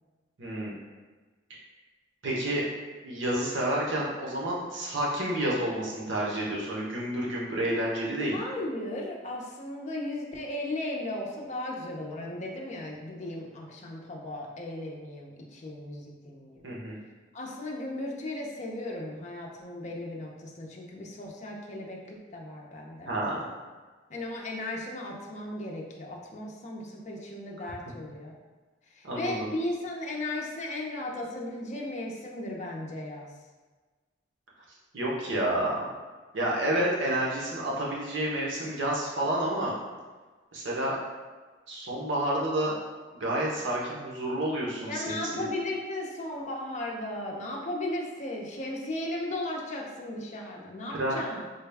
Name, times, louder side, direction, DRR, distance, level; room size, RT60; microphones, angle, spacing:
voice 1, 0.4-0.8 2.2-2.6 3.0-8.4 16.6-17.0 23.1-23.5 29.0-29.5 34.9-35.8 36.3-39.7 40.5-41.0 41.7-42.7 43.1-45.4 50.9-51.2, right 1 dB, 80° right, -4 dB, 0.9 m, -29 dB
voice 2, 8.3-16.7 17.3-23.1 24.1-28.3 28.9-33.3 44.9-51.4, left 1 dB, 40° left, -1 dB, 0.5 m, -36 dB
3.9 x 2.2 x 3.4 m, 1.3 s
head